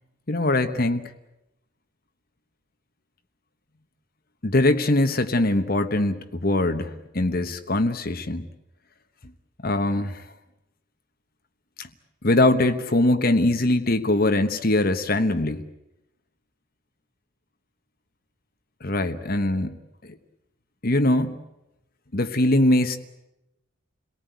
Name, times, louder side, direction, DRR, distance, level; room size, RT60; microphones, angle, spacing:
voice 1, 0.3-1.0 4.4-8.4 9.6-10.2 11.8-11.9 12.2-15.6 18.8-19.8 20.8-21.4 22.1-23.0, left 2 dB, 45° left, 8 dB, 1.2 m, -22 dB
28.5 x 18.5 x 9.3 m, 0.93 s
head